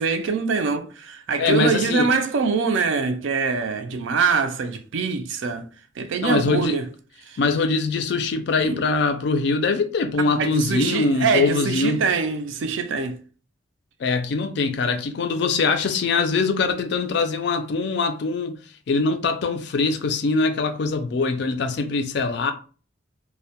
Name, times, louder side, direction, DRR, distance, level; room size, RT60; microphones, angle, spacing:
voice 1, 0.0-5.7 6.0-6.9 7.3-7.4 8.6-8.8 10.2-13.2, right 5 dB, 70° right, 0.4 m, -24 dB
voice 2, 1.4-2.1 6.2-6.8 7.4-12.0 14.0-18.6 18.9-22.5, left 4 dB, 55° left, 0.3 m, -23 dB
2.1 x 2.1 x 2.7 m
head